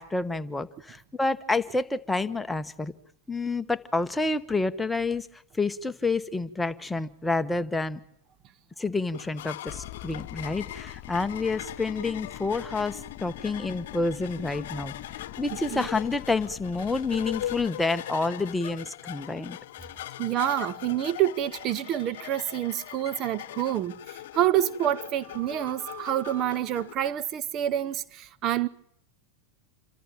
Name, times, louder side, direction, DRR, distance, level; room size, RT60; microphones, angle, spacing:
voice 1, 0.0-2.9 3.3-8.0 8.8-14.9 15.4-19.6, left 3 dB, 10° left, 1.2 m, -29 dB
sound 1, 9.1-26.9, left 13 dB, 75° left, 0.9 m, -40 dB
sound 2, 9.7-17.7, left 16 dB, 45° left, 1.0 m, -45 dB
voice 2, 20.2-28.7, right 12 dB, 40° right, 0.9 m, -27 dB
28.5 x 13.5 x 9.0 m
hypercardioid pair, 115°, 0 cm